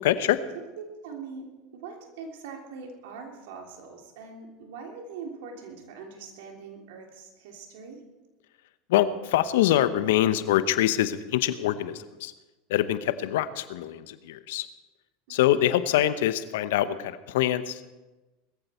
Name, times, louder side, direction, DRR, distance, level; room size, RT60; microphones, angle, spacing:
voice 1, 0.0-0.4 8.9-12.3 12.7-14.7 15.3-17.9, left 12 dB, 70° left, 13 dB, 1.0 m, -24 dB
voice 2, 0.5-8.0 15.3-15.6, right 5 dB, 70° right, 2 dB, 3.5 m, -42 dB
20.0 x 14.5 x 4.5 m, 1.1 s
hypercardioid pair, 90°, 0 cm